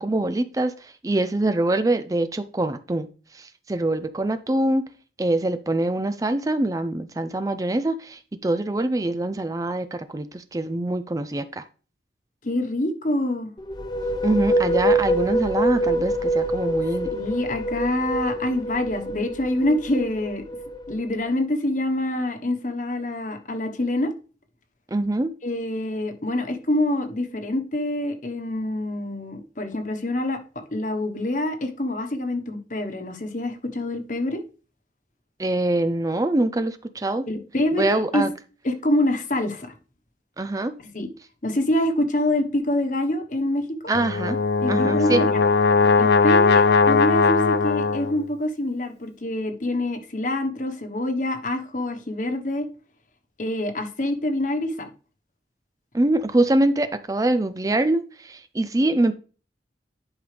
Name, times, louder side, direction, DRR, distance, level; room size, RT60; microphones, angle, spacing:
voice 1, 0.0-4.8 5.2-11.6 14.2-17.1 24.9-25.3 35.4-37.2 37.8-38.3 40.4-40.7 43.9-44.4 44.7-45.2 55.9-59.1, right 2 dB, 20° right, 0.4 m, -24 dB
voice 2, 12.4-13.5 17.1-20.4 20.9-24.1 25.4-30.4 30.7-34.4 37.3-38.3 38.6-39.7 40.9-41.1 41.4-43.8 44.6-45.4 46.0-52.7 53.4-54.9, left 1 dB, 45° left, 1.2 m, -26 dB
sound 1, 13.6-21.2, right 1 dB, 25° left, 0.8 m, -25 dB
Brass instrument, 43.9-48.2, left 4 dB, 65° left, 0.4 m, -19 dB
11.0 x 5.4 x 3.3 m
head